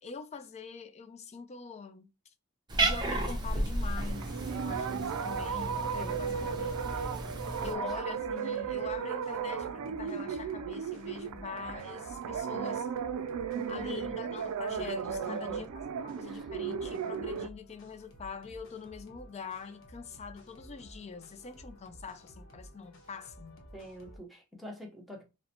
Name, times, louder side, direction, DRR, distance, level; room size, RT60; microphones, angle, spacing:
voice 1, 0.0-2.3 2.8-7.1 7.6-12.9 13.7-23.6, left 5 dB, 30° left, 0.4 m, -44 dB
Cat, 2.7-7.8, right 2 dB, 20° right, 0.6 m, -33 dB
sound 1, 4.0-17.5, right 7 dB, 75° right, 0.3 m, -35 dB
voice 2, 5.9-7.2 7.6-7.9 13.5-14.1 15.2-15.7 16.2-16.5 23.7-25.2, left 1 dB, ahead, 0.8 m, -46 dB
sound 2, 6.0-24.2, equal, 65° left, 0.9 m, -53 dB
3.9 x 2.1 x 2.8 m
head